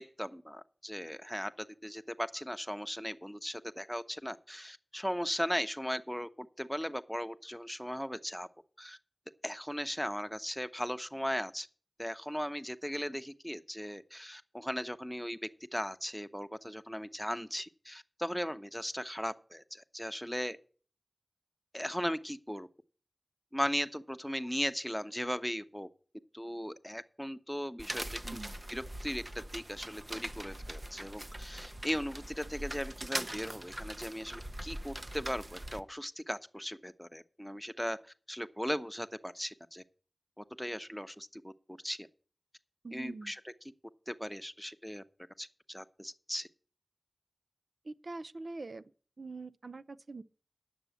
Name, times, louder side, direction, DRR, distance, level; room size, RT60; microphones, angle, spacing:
voice 1, 0.0-8.5 8.8-9.0 9.4-11.7 12.0-20.6 21.7-22.7 23.5-25.9 26.3-28.4 28.7-39.8 40.4-42.1 42.9-43.5 44.1-45.0 45.4-46.5, equal, 5° left, 0.8 m, -38 dB
sound 1, 27.8-35.8, right 1 dB, 35° right, 0.7 m, -42 dB
voice 2, 28.2-28.5 42.8-43.3 47.8-48.9 49.2-50.2, right 3 dB, 80° right, 0.4 m, -44 dB
10.0 x 6.8 x 8.0 m
wide cardioid pair, 45°, 0 cm